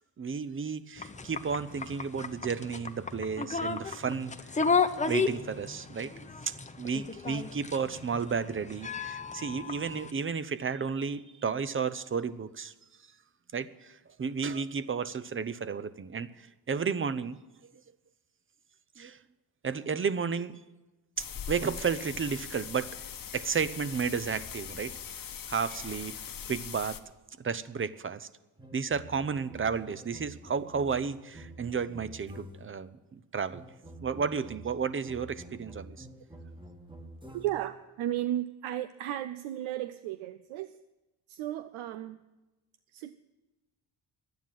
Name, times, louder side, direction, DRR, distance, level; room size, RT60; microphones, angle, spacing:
voice 1, 0.2-4.3 5.1-12.7 13.5-17.4 19.0-19.2 19.6-20.6 21.2-23.0 23.3-26.2 26.5-27.0 27.4-28.3 28.7-33.6 34.0-36.1, right 6 dB, 25° right, 14 dB, 0.6 m, -33 dB
sound 1, 1.0-10.1, left 5 dB, 15° left, 0.7 m, -33 dB
sound 2, 21.2-27.0, left 8 dB, 45° left, 1.0 m, -41 dB
sound 3, 28.6-32.8 33.5-37.8, right 1 dB, 10° right, 1.4 m, -48 dB
voice 2, 37.3-40.8 41.3-42.2 42.9-43.2, right 13 dB, 85° right, 13 dB, 0.6 m, -34 dB
11.5 x 9.3 x 7.5 m, 1.1 s
supercardioid pair, 65°, 47 cm